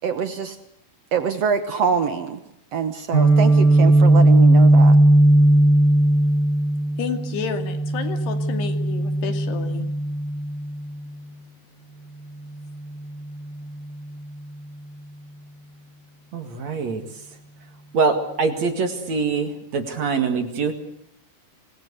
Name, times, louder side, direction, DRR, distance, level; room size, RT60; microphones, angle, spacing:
voice 1, 0.0-0.6 1.1-2.4 2.7-5.0, right 6 dB, 75° right, 9 dB, 1.5 m, -24 dB
Guitar, 3.1-11.0, right 1 dB, 10° left, 4.6 m, -17 dB
voice 2, 7.0-9.9, left 7 dB, 75° left, 7 dB, 4.5 m, -30 dB
voice 3, 16.3-17.0 17.9-20.7, right 4 dB, 50° right, 7 dB, 2.8 m, -24 dB
26.5 x 21.0 x 8.2 m, 0.74 s
omnidirectional pair, 4.8 m